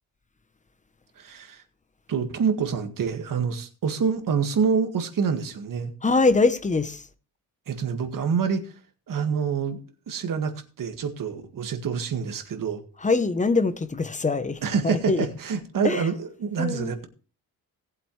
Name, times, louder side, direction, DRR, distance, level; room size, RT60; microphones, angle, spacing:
voice 1, 1.2-1.6 2.1-5.9 7.7-8.8 9.1-9.8 10.1-12.8 14.6-17.1, right 6 dB, 60° right, 1.8 m, -27 dB
voice 2, 6.0-7.0 13.0-14.6 14.8-15.3 15.8-16.0 16.6-16.9, left 3 dB, 20° left, 0.8 m, -23 dB
18.5 x 7.9 x 3.2 m
cardioid pair, 135°, 37 cm